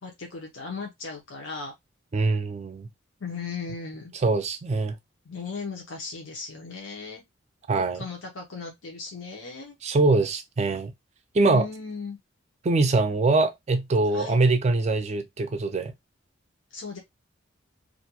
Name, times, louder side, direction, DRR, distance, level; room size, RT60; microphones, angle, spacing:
voice 1, 0.0-1.7 3.2-4.1 5.2-7.2 7.9-9.7 11.4-12.2 14.1-14.4 16.7-17.0, left 4 dB, 85° left, 0.7 m, -37 dB
voice 2, 2.1-2.9 4.2-4.9 7.7-8.0 9.8-10.9 11.3-11.7 12.6-15.9, right 3 dB, 35° right, 0.4 m, -23 dB
2.5 x 2.2 x 2.8 m
head